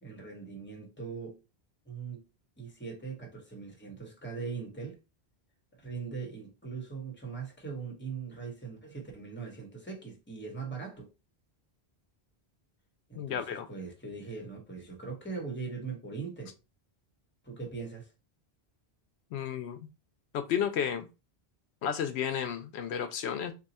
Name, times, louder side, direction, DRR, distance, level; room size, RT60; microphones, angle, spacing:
voice 1, 0.0-1.4 1.9-2.2 2.6-5.0 5.7-11.1 13.1-16.6 17.4-18.1, right 5 dB, 10° left, 1.0 m, -40 dB
voice 2, 13.2-13.7 19.3-19.8 20.3-21.1 21.8-23.5, left 8 dB, 85° left, 0.8 m, -32 dB
2.8 x 2.3 x 4.1 m
omnidirectional pair, 1.1 m